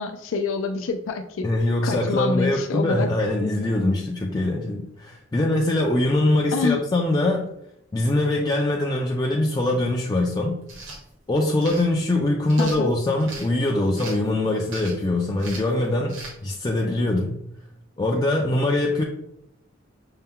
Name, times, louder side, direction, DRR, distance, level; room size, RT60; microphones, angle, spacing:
voice 1, 0.0-1.5 1.8-3.1 6.5-6.8 12.6-12.9, left 4 dB, 85° left, 5 dB, 0.4 m, -26 dB
voice 2, 1.4-7.5 7.9-10.6 11.3-17.4 18.0-19.0, left 1 dB, 20° left, 0 dB, 0.3 m, -23 dB
sound 1, 10.6-11.0 11.6-11.9 12.5-13.5 14.0-14.3 14.7-15.0 15.4-15.7 16.1-16.3, right 2 dB, 75° right, 1.2 m, -38 dB
5.4 x 2.2 x 3.7 m, 0.77 s
head